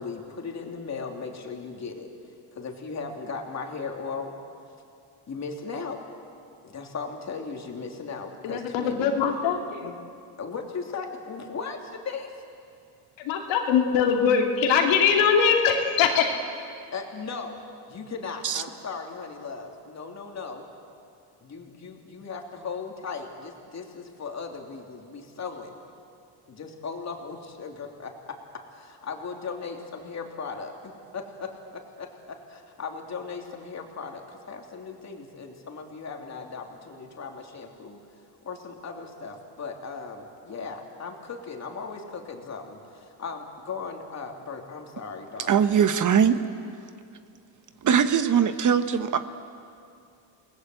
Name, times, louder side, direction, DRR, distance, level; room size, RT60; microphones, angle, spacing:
voice 1, 0.0-2.1 2.5-4.3 5.3-6.0 6.6-9.1 10.4-12.3 16.9-17.6 17.9-20.6 21.4-25.8 26.5-28.4 28.7-38.0 38.4-45.7, left 5 dB, 35° left, 2 dB, 3.2 m, -37 dB
voice 2, 8.4-10.0 13.2-16.4, left 6 dB, 80° left, 2 dB, 2.9 m, -22 dB
voice 3, 45.5-46.4 47.8-49.2, right 7 dB, 40° right, 10 dB, 1.1 m, -21 dB
28.5 x 20.0 x 8.0 m, 2.5 s
cardioid pair, 115°, 45 cm